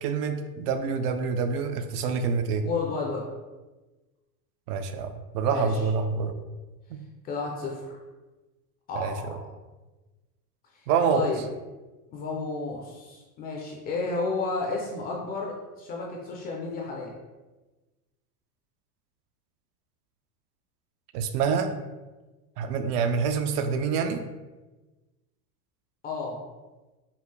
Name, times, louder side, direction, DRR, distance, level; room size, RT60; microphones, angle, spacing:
voice 1, 0.0-2.6 4.7-6.3 6.9-7.0 8.9-9.1 10.9-11.3 21.1-21.7 22.6-24.2, right 5 dB, 75° right, 8 dB, 0.6 m, -26 dB
voice 2, 2.6-3.2 5.5-5.9 7.2-8.0 8.9-9.4 11.1-11.4 12.1-17.1 26.0-26.4, left 3 dB, 20° left, -1 dB, 0.3 m, -32 dB
5.4 x 2.4 x 3.2 m, 1.2 s
supercardioid pair, 130°, 47 cm